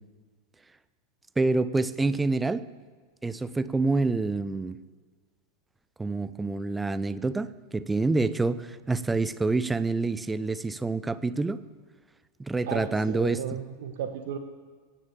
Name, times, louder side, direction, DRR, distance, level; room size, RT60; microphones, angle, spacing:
voice 1, 1.4-2.7 3.2-4.8 6.0-11.6 12.4-13.4, right 3 dB, 10° right, 16 dB, 0.6 m, -27 dB
voice 2, 12.6-14.4, right 8 dB, 55° right, 7 dB, 1.2 m, -34 dB
17.0 x 9.8 x 7.1 m, 1.5 s
figure-of-eight pair, 90°, 0 cm